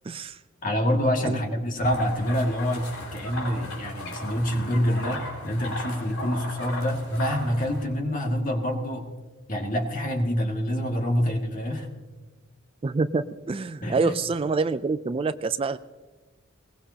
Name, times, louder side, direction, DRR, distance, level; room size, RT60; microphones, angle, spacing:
voice 1, 0.0-0.4 1.2-1.4 12.8-15.8, right 4 dB, 25° right, 13 dB, 0.4 m, -26 dB
voice 2, 0.6-9.1 9.5-11.9 13.8-14.2, equal, 40° left, 2 dB, 2.2 m, -26 dB
sound 1, 1.8-7.8, left 1 dB, 80° left, 4.7 m, -37 dB
21.5 x 19.5 x 2.9 m, 1.3 s
head